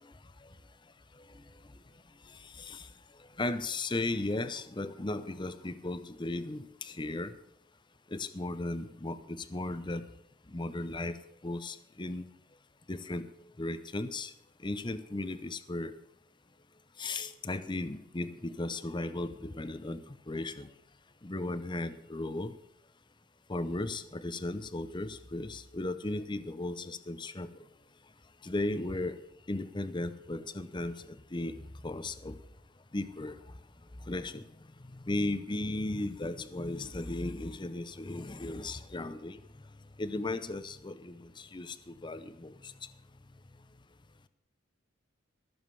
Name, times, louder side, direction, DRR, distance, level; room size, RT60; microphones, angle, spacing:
voice 1, 3.4-7.3 8.1-10.0 10.5-11.1 11.4-12.3 12.9-13.2 13.6-14.3 14.6-15.9 17.0-20.0 20.3-20.7 21.2-22.5 23.5-27.5 28.4-29.2 29.5-30.9 31.3-31.6 31.8-32.4 32.9-33.4 34.1-34.4 35.1-39.4 40.0-41.8 42.0-42.7, left 2 dB, 20° left, 13 dB, 0.7 m, -36 dB
14.5 x 7.2 x 7.0 m, 0.77 s
head